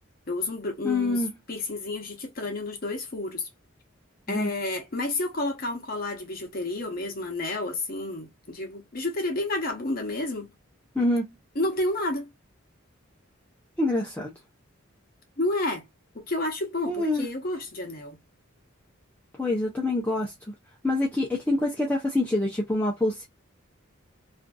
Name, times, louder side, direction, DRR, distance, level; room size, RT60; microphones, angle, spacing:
voice 1, 0.3-3.5 4.3-10.5 11.5-12.3 15.4-15.9 16.1-18.2, left 2 dB, 45° left, 0.8 m, -30 dB
voice 2, 0.8-1.3 4.3-4.5 11.0-11.3 13.8-14.3 16.9-17.3 19.4-20.3 20.8-23.3, left 2 dB, 10° left, 0.5 m, -25 dB
2.5 x 2.5 x 2.3 m
head